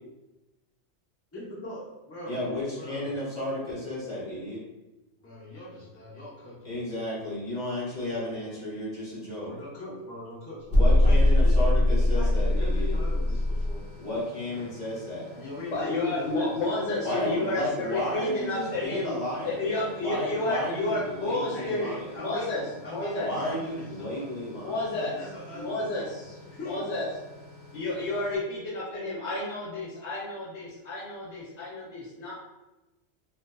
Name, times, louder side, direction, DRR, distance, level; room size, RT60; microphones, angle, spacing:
voice 1, 1.3-3.1 5.2-6.6 9.4-11.6 12.0-13.9 14.5-14.7 15.3-16.5 21.5-24.4 24.9-26.8, left 1 dB, 20° left, -8 dB, 0.4 m, -42 dB
voice 2, 2.3-4.6 6.6-9.5 10.7-12.9 14.0-15.3 17.0-22.1 23.2-24.8, left 1 dB, 35° left, -8 dB, 1.3 m, -33 dB
sound 1, 10.7-13.8, left 1 dB, 60° right, 1.0 m, -21 dB
sound 2, 12.3-28.4, left 2 dB, 40° right, 1.3 m, -49 dB
voice 3, 15.7-19.1 19.4-21.9 22.2-22.6 22.9-23.3 24.6-25.1 25.5-26.4 26.6-27.1 27.7-32.3, left 2 dB, 65° left, -7 dB, 0.9 m, -31 dB
2.5 x 2.4 x 2.2 m, 1.0 s
omnidirectional pair, 1.3 m